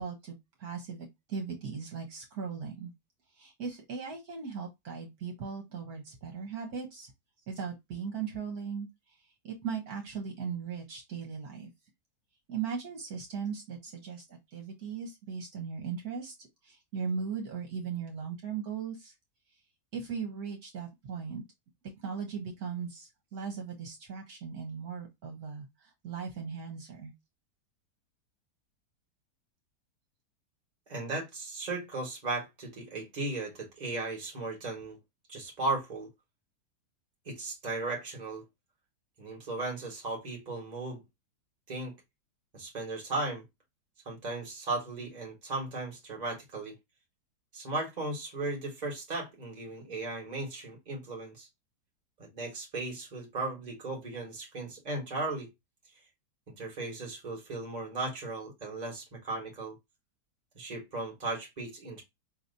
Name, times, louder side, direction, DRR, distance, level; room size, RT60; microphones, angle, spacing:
voice 1, 0.0-2.9 3.3-7.1 7.5-9.2 9.4-11.7 12.5-19.2 19.9-21.4 21.8-27.1, right 6 dB, 65° right, 1.5 m, -38 dB
voice 2, 30.9-35.0 35.3-36.1 37.2-38.4 39.2-41.0 41.7-42.0 42.5-43.4 44.0-46.8 47.5-51.5 52.2-55.5 56.5-59.7 60.5-62.0, right 2 dB, 25° right, 1.6 m, -36 dB
5.0 x 2.9 x 2.6 m
omnidirectional pair, 1.8 m